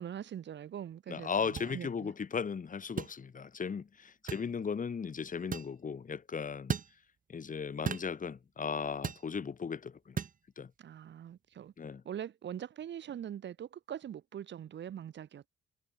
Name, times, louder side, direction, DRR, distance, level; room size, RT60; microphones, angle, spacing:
voice 1, 0.0-2.1 4.2-4.3 10.8-11.7 12.0-15.5, right 10 dB, 65° right, 6.3 m, -43 dB
voice 2, 1.1-6.8 7.3-10.2 10.6-10.7 11.8-12.0, left 6 dB, 40° left, 6.8 m, -37 dB
sound 1, 1.6-1.7 3.0-3.2 4.3-4.5 5.5-5.7 6.7-6.9 7.9-8.1 9.0-9.3 10.2-10.4, right 7 dB, 45° right, 1.8 m, -35 dB
cardioid pair, 90°, 20 cm